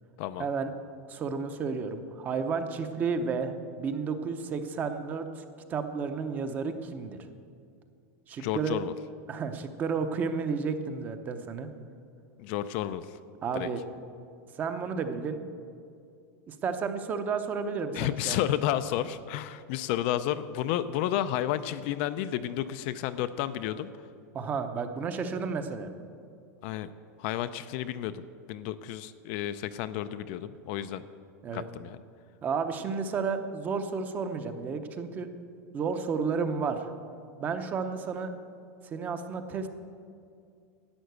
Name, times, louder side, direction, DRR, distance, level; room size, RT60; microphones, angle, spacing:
voice 1, 0.4-0.7 1.1-5.4 5.7-7.2 8.3-8.8 9.3-11.7 13.4-13.8 14.6-15.4 16.5-18.5 24.3-25.9 31.4-31.6 32.4-35.3 35.7-36.8 37.4-38.3 38.8-39.7, right 5 dB, 20° right, 9 dB, 0.7 m, -32 dB
voice 2, 8.4-8.9 12.4-13.2 13.5-13.7 17.9-23.9 26.6-26.9 27.2-28.2 28.5-31.0 31.5-32.0, left 12 dB, 40° left, 12 dB, 0.4 m, -31 dB
11.5 x 8.8 x 8.1 m, 2.4 s
supercardioid pair, 170°, 9 cm